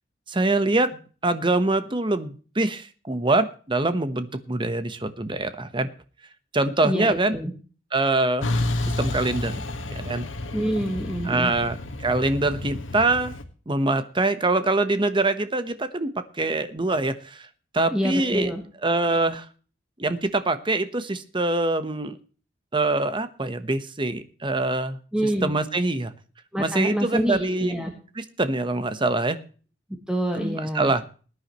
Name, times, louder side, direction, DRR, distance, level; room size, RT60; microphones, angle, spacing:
voice 1, 0.3-5.9 6.5-7.4 7.9-8.5 9.0-9.6 9.9-10.2 11.2-13.3 13.7-17.5 17.7-18.5 18.8-19.5 20.0-22.2 22.7-26.1 26.6-27.8 28.2-29.4 30.4-31.0, right 2 dB, 25° right, 11 dB, 1.1 m, -24 dB
voice 2, 6.8-7.5 10.5-11.5 17.9-18.6 25.1-25.5 26.5-27.9 30.1-30.9, equal, 5° right, 3 dB, 1.5 m, -26 dB
Truck, 8.4-13.4, left 2 dB, 90° left, 1.6 m, -30 dB
20.0 x 9.9 x 3.1 m, 0.38 s
head